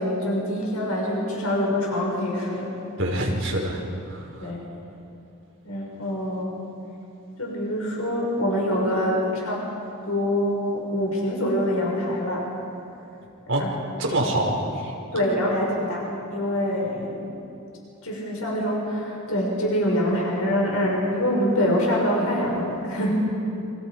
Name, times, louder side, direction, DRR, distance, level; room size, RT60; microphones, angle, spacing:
voice 1, 0.0-2.7 4.4-4.6 5.6-6.6 7.4-9.6 10.1-12.5 13.6-13.7 15.1-17.3 18.0-23.2, equal, 85° left, -3 dB, 6.4 m, -25 dB
voice 2, 3.0-3.8 4.1-4.5 13.5-13.6 14.0-14.9, right 1 dB, 60° right, -2 dB, 5.6 m, -25 dB
30.0 x 26.0 x 5.3 m, 2.7 s
head